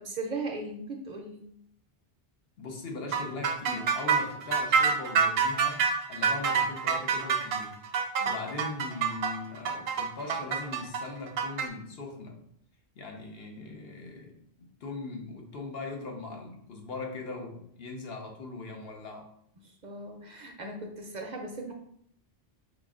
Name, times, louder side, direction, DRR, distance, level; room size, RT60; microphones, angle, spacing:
voice 1, 0.0-1.4 8.2-8.3 19.8-21.7, right 2 dB, 55° right, 2 dB, 0.6 m, -38 dB
voice 2, 2.6-7.8 8.2-12.4 13.0-19.3, left 3 dB, 70° left, 1 dB, 1.0 m, -40 dB
sound 1, 3.1-11.7, right 6 dB, 80° right, 0.8 m, -27 dB
5.0 x 2.5 x 3.6 m, 0.68 s
omnidirectional pair, 1.1 m